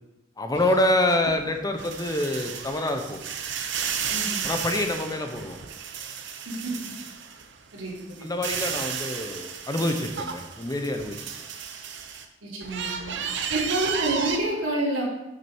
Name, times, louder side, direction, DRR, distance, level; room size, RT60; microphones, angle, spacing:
voice 1, 0.4-3.2 4.4-5.6 8.2-11.3, left 1 dB, 20° left, 5 dB, 0.9 m, -26 dB
sound 1, 0.5-7.5 7.9-12.2 12.6-14.4, right 7 dB, 65° right, 0.9 m, -33 dB
voice 2, 4.1-4.4 6.4-6.7 7.7-8.3 12.4-13.1 13.5-15.0, right 2 dB, 80° right, -5 dB, 3.3 m, -29 dB
8.8 x 6.6 x 4.5 m, 0.95 s
head